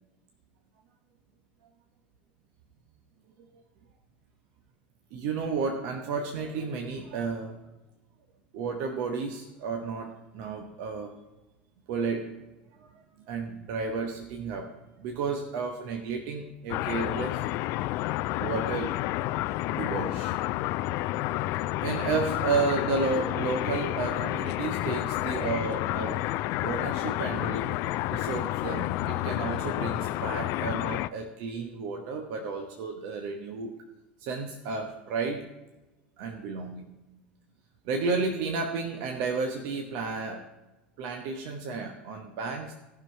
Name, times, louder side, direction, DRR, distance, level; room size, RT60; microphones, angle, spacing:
voice 1, 5.1-7.6 8.5-11.1 11.9-12.4 12.7-14.7 15.0-17.4 18.4-19.0 19.7-20.3 21.8-26.3 26.6-27.7 28.1-33.8 34.2-35.5 36.2-37.0 37.8-40.5 41.0-42.7, right 4 dB, 60° right, 3 dB, 1.0 m, -32 dB
sound 1, 16.7-31.1, left 16 dB, 55° left, 0.3 m, -30 dB
14.5 x 5.9 x 4.5 m, 1.1 s
hypercardioid pair, 80°, 5 cm